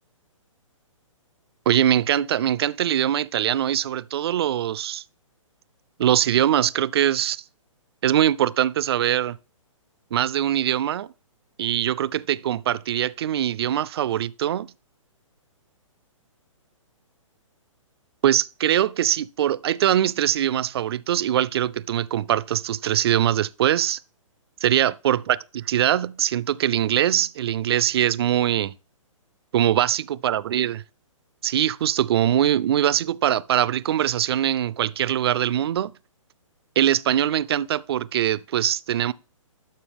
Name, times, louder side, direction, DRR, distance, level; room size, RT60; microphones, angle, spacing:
voice 1, 1.7-5.0 6.0-7.4 8.0-9.4 10.1-11.1 11.6-14.7 18.2-24.0 24.6-28.7 29.5-30.8 31.4-35.9 36.8-39.1, right 11 dB, 50° right, 0.4 m, -22 dB
11.5 x 5.9 x 3.4 m
hypercardioid pair, 150°, 17 cm